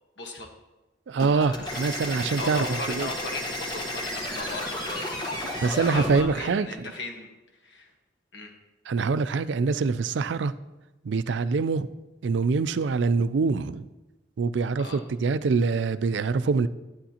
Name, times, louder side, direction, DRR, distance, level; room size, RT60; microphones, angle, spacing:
voice 1, 0.2-0.5 1.1-1.8 2.4-7.3 7.6-7.9 8.3-8.5 14.8-15.0, left 2 dB, 70° left, 3 dB, 1.3 m, -37 dB
voice 2, 1.1-3.1 5.6-6.7 8.9-10.5 11.0-11.9 12.2-13.8 14.4-16.7, right 4 dB, 75° right, 14 dB, 0.4 m, -25 dB
sound 1, 1.2-6.2, left 1 dB, 25° left, 1.2 m, -32 dB
11.5 x 9.2 x 2.9 m, 1.1 s
head